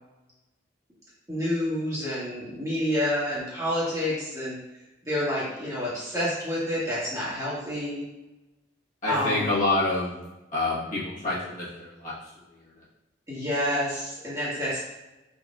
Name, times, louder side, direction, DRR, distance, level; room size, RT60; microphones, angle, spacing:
voice 1, 1.3-4.6 5.1-8.0 9.1-9.4 13.3-14.8, equal, 15° right, -8 dB, 1.4 m, -28 dB
voice 2, 9.0-10.2 10.5-12.1, left 2 dB, 40° left, -9 dB, 1.4 m, -27 dB
4.7 x 3.9 x 2.5 m, 1.0 s
head